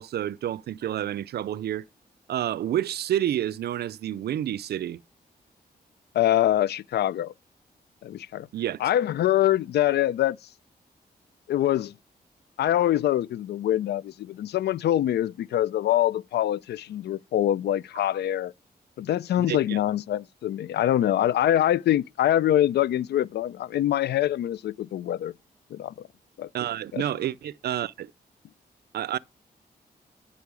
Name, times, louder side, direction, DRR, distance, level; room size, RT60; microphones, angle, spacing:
voice 1, 0.0-1.8 2.3-5.0 8.5-8.8 19.4-19.8 26.5-28.1 28.9-29.2, right 11 dB, 75° right, 0.4 m, -29 dB
voice 2, 6.1-7.3 8.0-8.5 8.8-10.4 11.5-11.9 12.6-18.5 19.0-25.3 25.7-26.1 26.4-26.5 26.9-27.0, left 12 dB, 80° left, 0.4 m, -24 dB
9.5 x 5.7 x 5.1 m
cardioid pair, 80°, 17 cm